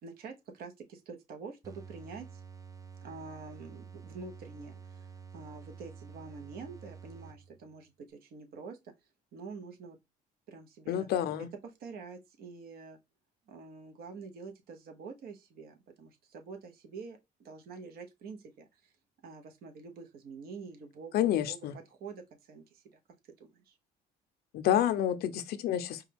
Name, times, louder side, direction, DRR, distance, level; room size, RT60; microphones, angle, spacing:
voice 1, 0.0-2.4 3.0-8.9 9.3-10.0 10.5-11.1 11.4-11.5 11.8-13.0 13.5-18.9 19.2-21.6 22.0-23.0 23.3-23.8, right 4 dB, 65° right, 0.9 m, -47 dB
sound 1, 1.6-7.7, right 6 dB, 20° right, 0.5 m, -49 dB
voice 2, 10.9-11.5 21.1-21.7 24.5-26.0, left 11 dB, 70° left, 0.5 m, -29 dB
4.8 x 2.3 x 3.4 m
cardioid pair, 110°, 17 cm